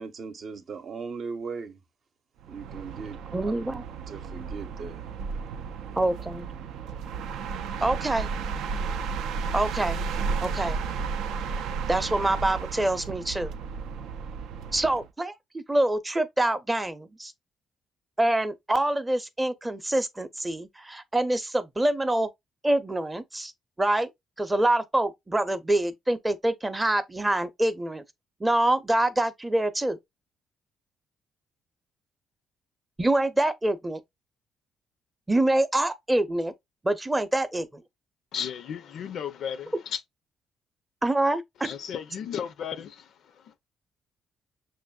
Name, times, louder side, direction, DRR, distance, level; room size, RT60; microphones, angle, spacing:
voice 1, 0.0-1.8 2.5-3.2 3.4-3.5 4.1-5.0, right 5 dB, 55° right, 0.7 m, -38 dB
sound 1, 2.4-15.1, right 5 dB, 85° right, 0.3 m, -33 dB
voice 2, 3.3-3.8 6.0-6.5 7.8-8.3 9.5-10.0 10.4-10.8 11.9-13.5 14.7-17.3 18.2-22.3 22.6-23.5 23.8-24.1 24.4-28.0 28.4-30.0 33.0-34.0 35.3-36.5 36.8-37.8 41.0-41.7, right 1 dB, 15° right, 0.6 m, -25 dB
voice 3, 38.3-40.0 41.6-43.5, left 8 dB, 70° left, 0.4 m, -35 dB
6.1 x 2.5 x 2.2 m
cardioid pair, 90°, 0 cm